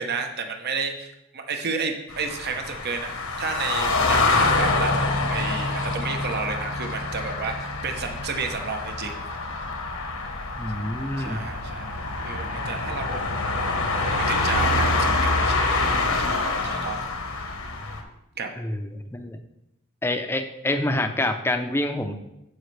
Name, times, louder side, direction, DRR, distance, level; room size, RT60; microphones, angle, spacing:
voice 1, 0.0-3.1 3.4-4.9 5.3-9.1 11.2-13.2 14.2-15.9 16.2-17.0 18.4-18.5, right 5 dB, 50° right, 5 dB, 0.9 m, -32 dB
sound 1, 2.1-18.0, left 3 dB, 75° left, 1.2 m, -26 dB
voice 2, 10.6-11.4 18.6-19.4 20.0-22.1, left 1 dB, 10° left, 6 dB, 0.6 m, -27 dB
14.5 x 5.1 x 3.3 m, 0.87 s
head